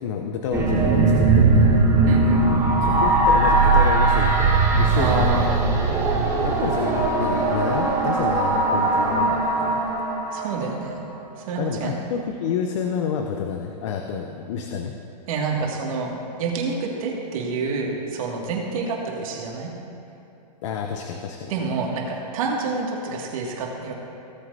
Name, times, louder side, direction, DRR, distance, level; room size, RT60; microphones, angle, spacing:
voice 1, 0.0-1.7 2.8-5.4 6.4-9.8 11.6-14.9 20.6-21.5, left 7 dB, 45° left, 3 dB, 0.7 m, -29 dB
sound 1, 0.5-10.9, right 3 dB, 15° right, 1.6 m, -19 dB
voice 2, 2.1-2.8 4.9-5.7 10.3-11.0 11.5-12.0 15.3-19.7 21.5-23.9, right 4 dB, 55° right, -2 dB, 2.2 m, -27 dB
18.5 x 7.6 x 2.7 m, 2.9 s
hypercardioid pair, 150°, 21 cm